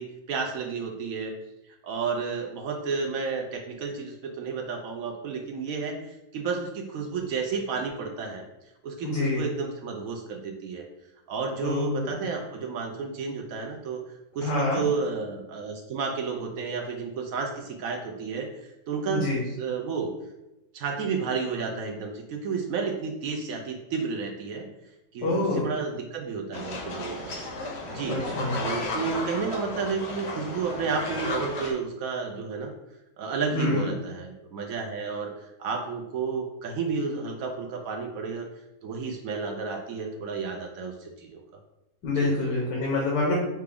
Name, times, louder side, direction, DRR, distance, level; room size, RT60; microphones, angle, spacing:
voice 1, 0.0-1.3 1.8-6.0 6.3-8.5 8.8-10.9 11.3-14.0 14.3-18.5 18.9-19.3 19.6-20.1 20.7-24.7 25.1-27.3 27.6-28.2 28.5-32.7 33.2-35.3 35.6-38.5 38.8-41.4 42.2-42.3, right 5 dB, 70° right, 3 dB, 0.8 m, -31 dB
voice 2, 9.0-9.4 11.6-12.3 14.4-14.8 19.1-19.4 25.2-25.7 28.0-28.6 33.5-33.9 42.0-43.4, left 2 dB, 85° left, -3 dB, 1.6 m, -26 dB
sound 1, 26.5-31.7, left 2 dB, 50° left, 0.8 m, -34 dB
5.8 x 2.3 x 3.4 m, 0.94 s
omnidirectional pair, 1.9 m